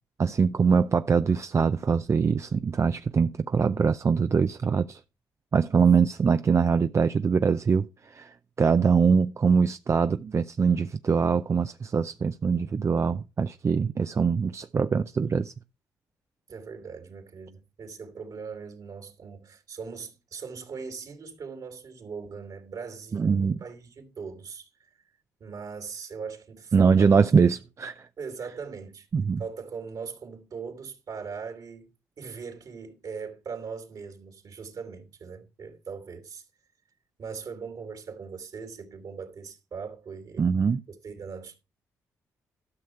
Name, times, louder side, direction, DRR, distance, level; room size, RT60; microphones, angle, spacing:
voice 1, 0.2-5.0 5.5-8.3 8.6-15.5 23.1-23.6 26.7-27.9 29.1-29.4 40.4-40.8, right 5 dB, 40° right, 0.5 m, -23 dB
voice 2, 16.5-24.9 25.4-27.3 28.2-29.1 29.4-36.5 37.2-40.5 41.0-41.5, right 5 dB, 60° right, 3.0 m, -40 dB
13.0 x 6.6 x 4.5 m
supercardioid pair, 50°, 7 cm